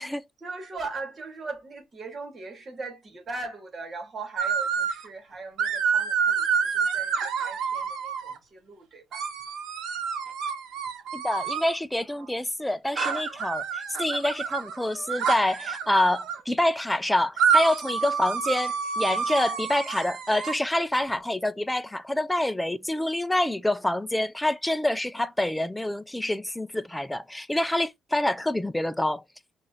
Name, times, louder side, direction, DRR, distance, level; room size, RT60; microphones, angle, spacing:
voice 1, 0.4-9.2 12.1-12.4, right 3 dB, 40° right, 1.7 m, -39 dB
sound 1, 4.4-5.1 5.6-8.4 9.1-11.8 13.0-16.4 17.4-20.5, right 6 dB, 85° right, 0.9 m, -28 dB
voice 2, 11.1-29.2, left 1 dB, 10° left, 0.4 m, -27 dB
5.9 x 2.5 x 2.8 m
cardioid pair, 90°, 0 cm